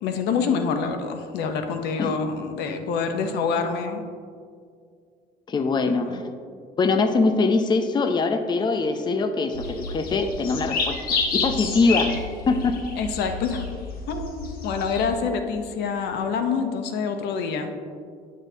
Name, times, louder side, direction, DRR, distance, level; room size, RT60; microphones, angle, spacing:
voice 1, 0.0-4.0 5.8-6.2 13.0-13.6 14.1-17.7, left 5 dB, 80° left, 6 dB, 0.7 m, -26 dB
voice 2, 5.5-6.2 6.8-12.1 12.5-12.8, left 3 dB, 25° left, 7 dB, 0.5 m, -23 dB
sound 1, 9.5-15.1, left 4 dB, 65° left, 1.2 m, -29 dB
10.0 x 6.3 x 2.7 m, 2.2 s
cardioid pair, 110°, 17 cm